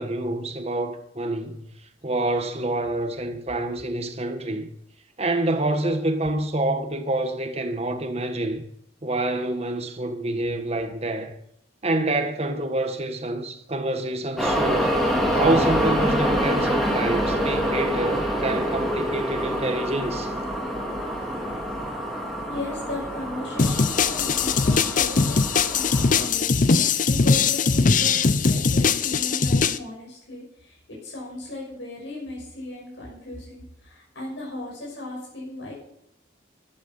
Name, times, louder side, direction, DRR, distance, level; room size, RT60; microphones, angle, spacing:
voice 1, 0.0-1.7 2.0-4.7 5.2-8.6 9.0-11.3 11.8-15.0 15.3-20.3, right 2 dB, 35° right, 1.5 m, -27 dB
sound 1, 14.4-26.3, equal, ahead, 3.3 m, -26 dB
voice 2, 22.2-35.7, left 1 dB, 85° left, 5.9 m, -36 dB
sound 2, 23.6-29.8, left 4 dB, 45° left, 0.6 m, -21 dB
14.0 x 11.5 x 5.6 m
head